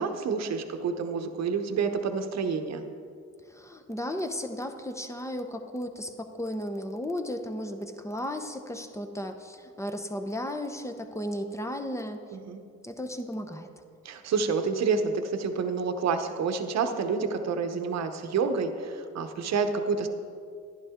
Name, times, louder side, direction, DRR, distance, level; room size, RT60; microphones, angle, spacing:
voice 1, 0.0-2.8 12.3-12.6 14.0-20.1, right 5 dB, 60° right, 7 dB, 0.9 m, -28 dB
voice 2, 3.5-12.2 12.8-13.7, left 1 dB, 10° left, 6 dB, 0.8 m, -34 dB
11.0 x 10.5 x 3.7 m, 2.4 s
cardioid pair, 90°, 30 cm